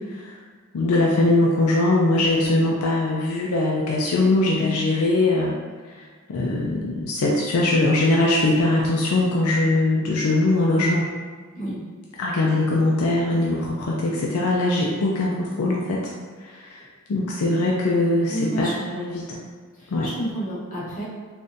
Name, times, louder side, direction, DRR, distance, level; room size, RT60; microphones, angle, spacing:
voice 1, 0.7-5.5 6.0-11.0 12.2-16.0 16.4-16.8 17.1-19.2 19.9-20.1, left 2 dB, 75° left, -3 dB, 0.4 m, -21 dB
voice 2, 11.5-11.9 18.3-19.2 19.7-21.0, equal, 35° left, -9 dB, 1.1 m, -30 dB
3.5 x 2.6 x 2.5 m, 1.5 s
head